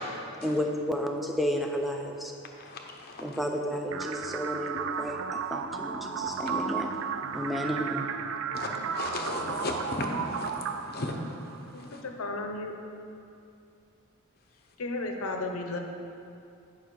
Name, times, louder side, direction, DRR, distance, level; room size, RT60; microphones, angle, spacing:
voice 1, 0.4-2.3 3.2-6.9 7.3-8.1, equal, ahead, 2 dB, 0.5 m, -32 dB
voice 2, 2.6-3.2 8.5-10.5 10.9-11.3 11.7-12.0, left 2 dB, 45° left, 2 dB, 0.8 m, -35 dB
sound 1, 3.9-11.9, right 6 dB, 65° right, 0.3 m, -34 dB
voice 3, 11.7-12.7 14.8-15.8, left 2 dB, 80° left, 4 dB, 0.7 m, -34 dB
9.2 x 5.4 x 4.6 m, 2.5 s
head